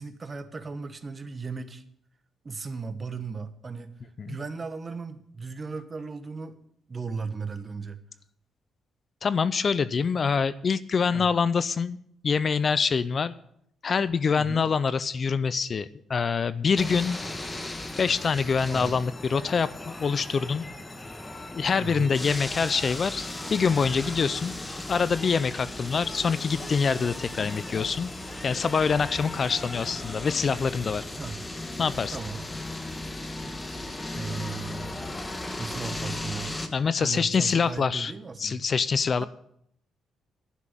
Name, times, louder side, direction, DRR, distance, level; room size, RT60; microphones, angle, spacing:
voice 1, 0.0-1.8 2.4-3.9 4.3-6.6 6.9-8.0 11.1-11.3 14.4-14.7 18.7-19.0 21.8-22.1 31.2-31.4 32.1-32.4 34.1-34.9 35.6-36.6 37.0-38.6, right 4 dB, 30° right, 10 dB, 1.2 m, -36 dB
voice 2, 9.2-12.0 12.2-13.3 13.8-17.2 18.0-20.6 21.5-24.5 24.9-28.1 28.4-31.1 31.8-32.2 36.7-38.1 38.4-39.2, left 5 dB, 45° left, 16 dB, 0.5 m, -25 dB
sound 1, 16.8-36.7, left 2 dB, 20° left, 1.4 m, -36 dB
11.0 x 6.1 x 9.0 m, 0.71 s
cardioid pair, 90°, 0 cm